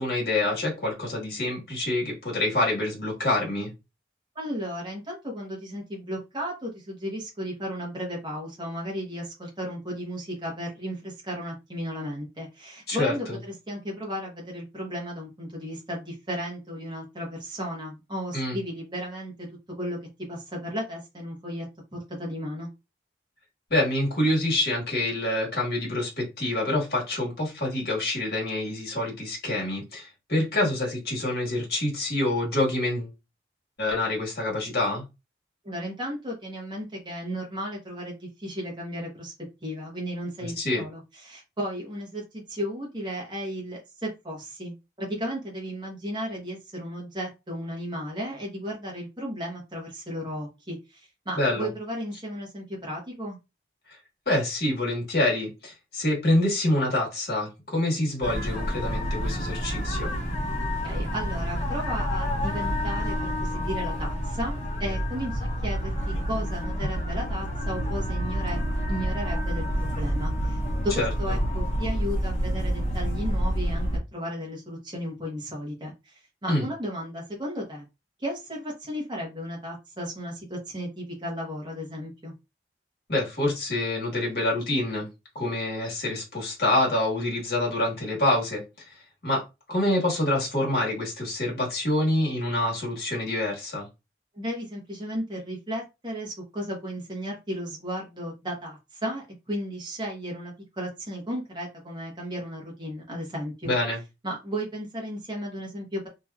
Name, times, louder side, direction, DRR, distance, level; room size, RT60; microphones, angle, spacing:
voice 1, 0.0-3.7 12.9-13.4 18.3-18.6 23.7-33.1 33.8-35.0 40.4-40.8 51.3-51.7 54.2-60.1 71.0-71.4 76.5-76.7 83.1-85.1 85.3-88.6 89.2-89.4 89.7-93.9 103.6-104.0, left 1 dB, 60° left, 1.5 m, -26 dB
voice 2, 4.3-19.5 19.8-20.0 20.3-21.6 21.9-22.7 35.6-39.3 39.6-53.4 60.8-68.6 68.9-76.1 76.4-77.8 78.2-82.3 94.4-103.7 104.2-106.1, equal, 25° right, 1.1 m, -34 dB
sound 1, 58.2-74.0, equal, 40° left, 1.1 m, -28 dB
3.0 x 2.7 x 2.3 m
head